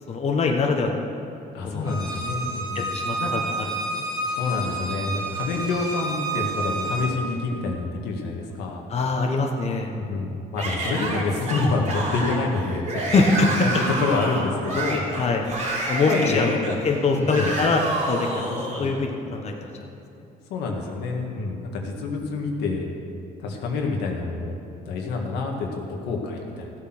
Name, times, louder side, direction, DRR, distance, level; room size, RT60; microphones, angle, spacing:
voice 1, 0.1-1.1 1.6-1.9 2.7-3.6 4.0-4.1 8.9-10.0 13.1-13.5 13.7-13.8 15.2-15.4 15.9-18.4 18.8-19.9, left 3 dB, 40° left, 2 dB, 1.2 m, -23 dB
voice 2, 1.5-2.9 3.2-3.3 4.4-8.9 9.9-13.0 13.6-15.4 16.0-16.4 16.7-16.8 17.1-17.5 18.5-19.0 20.5-22.9 23.4-26.7, left 3 dB, 85° left, 0 dB, 1.9 m, -27 dB
Bowed string instrument, 1.8-7.1, right 2 dB, 20° right, 2.3 m, -29 dB
Yell / Screaming, 10.6-18.9, right 2 dB, 40° right, 3.2 m, -29 dB
14.5 x 8.5 x 6.1 m, 2.7 s
cardioid pair, 110°, 17 cm